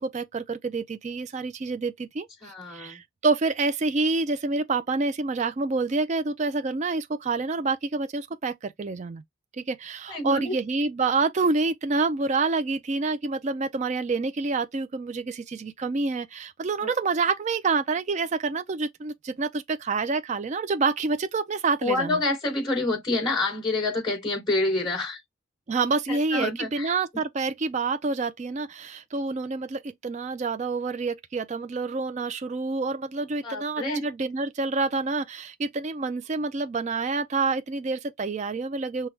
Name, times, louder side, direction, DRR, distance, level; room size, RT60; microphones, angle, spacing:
voice 1, 0.0-2.3 2.7-9.2 9.6-22.2 25.7-39.1, right 3 dB, 35° right, 0.3 m, -27 dB
voice 2, 2.4-3.0 10.1-10.5 16.8-16.9 21.8-25.2 26.1-26.9 33.4-34.0, left 2 dB, 20° left, 2.5 m, -27 dB
5.9 x 2.2 x 3.2 m
head